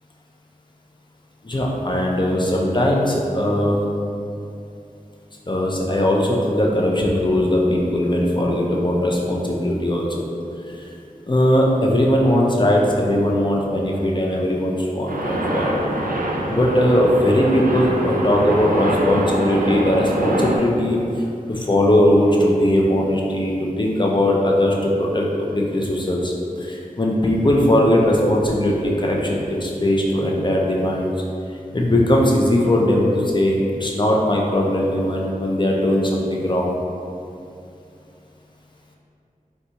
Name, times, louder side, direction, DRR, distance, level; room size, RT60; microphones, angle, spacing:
voice 1, 1.4-3.8 5.5-10.2 11.3-15.7 16.5-21.0 21.5-26.3 26.6-31.1 31.7-36.7, left 1 dB, 30° left, -2 dB, 0.5 m, -19 dB
sound 1, 15.1-20.6, right 1 dB, 75° right, 0.4 m, -24 dB
3.9 x 2.4 x 2.8 m, 2.6 s
wide cardioid pair, 45°, 15 cm